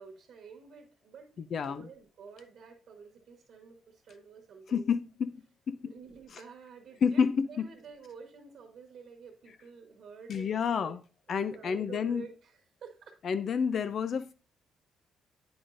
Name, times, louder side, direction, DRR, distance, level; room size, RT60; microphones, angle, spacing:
voice 1, 0.0-4.9 5.8-7.2 7.5-10.9 11.3-13.1, right 5 dB, 65° right, 1.2 m, -50 dB
voice 2, 1.4-1.9 4.7-5.9 6.3-6.4 7.0-7.6 10.3-11.0 11.3-12.2 13.2-14.3, left 6 dB, 55° left, 0.3 m, -30 dB
8.7 x 5.2 x 2.5 m
cardioid pair, 90°, 0 cm